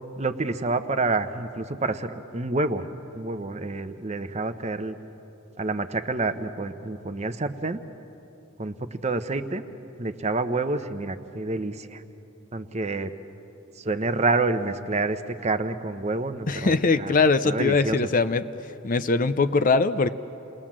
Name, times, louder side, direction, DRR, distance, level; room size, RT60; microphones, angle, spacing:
voice 1, 0.2-2.9 3.1-5.0 5.6-7.8 8.6-9.6 10.0-12.0 12.5-13.1 13.8-17.1 17.4-18.1, right 3 dB, 30° right, 10 dB, 0.8 m, -28 dB
voice 2, 16.5-18.4 18.8-20.1, left 4 dB, 40° left, 12 dB, 0.5 m, -21 dB
29.0 x 20.0 x 7.4 m, 2.9 s
head